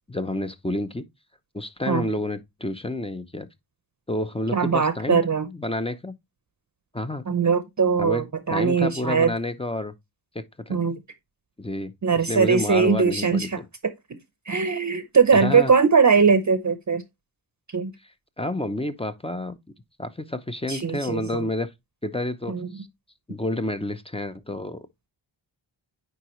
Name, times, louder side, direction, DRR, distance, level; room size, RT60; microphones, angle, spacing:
voice 1, 0.1-1.0 1.5-3.5 4.1-5.2 5.5-6.1 6.9-7.2 8.0-8.2 8.5-9.9 10.3-10.8 11.6-11.9 12.3-13.7 15.4-15.7 18.4-19.6 20.0-21.7 22.0-22.9 23.3-25.1, left 1 dB, 10° left, 0.6 m, -29 dB
voice 2, 4.5-5.5 7.3-9.3 10.7-11.0 12.0-13.6 14.5-17.0 17.7-17.9 20.7-21.5 22.5-22.8, right 5 dB, 35° right, 0.7 m, -21 dB
9.5 x 3.9 x 3.0 m
wide cardioid pair, 95°, 48 cm